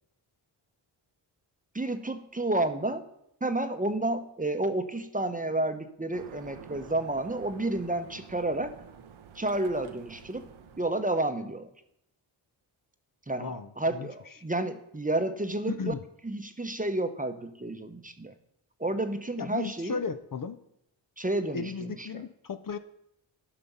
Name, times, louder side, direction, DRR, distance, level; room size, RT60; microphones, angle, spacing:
voice 1, 1.7-3.0 3.4-8.7 9.3-10.5 10.8-11.7 13.3-15.9 16.2-18.3 18.8-20.0 21.2-22.2, right 2 dB, 15° right, 9 dB, 0.9 m, -30 dB
sound 1, 6.1-11.3, right 7 dB, 70° right, 0.8 m, -49 dB
voice 2, 13.4-14.1 15.7-16.0 19.4-20.6 21.5-22.8, left 5 dB, 40° left, 10 dB, 0.7 m, -35 dB
11.0 x 5.7 x 5.5 m, 0.78 s
supercardioid pair, 40°, 49 cm